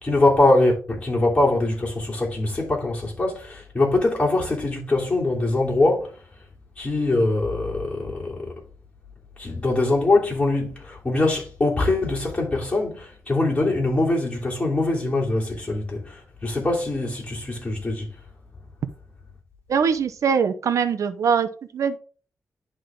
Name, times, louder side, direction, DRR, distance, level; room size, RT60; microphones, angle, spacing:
voice 1, 0.0-6.2 6.8-8.5 9.4-18.1, left 2 dB, 25° left, 3.2 m, -23 dB
voice 2, 19.7-21.5 21.7-22.0, right 6 dB, 80° right, 0.8 m, -22 dB
10.5 x 3.7 x 3.8 m
wide cardioid pair, 100°, 5 cm